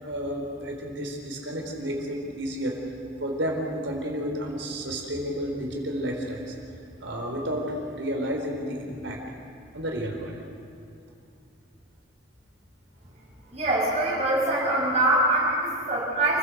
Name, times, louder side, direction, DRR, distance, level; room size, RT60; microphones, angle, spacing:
voice 1, 0.0-2.8 3.2-6.5 7.0-9.2 9.7-10.4, equal, 80° right, 1 dB, 4.4 m, -31 dB
voice 2, 13.5-16.4, right 1 dB, 35° right, -4 dB, 7.0 m, -23 dB
29.5 x 16.5 x 8.1 m, 2.5 s
head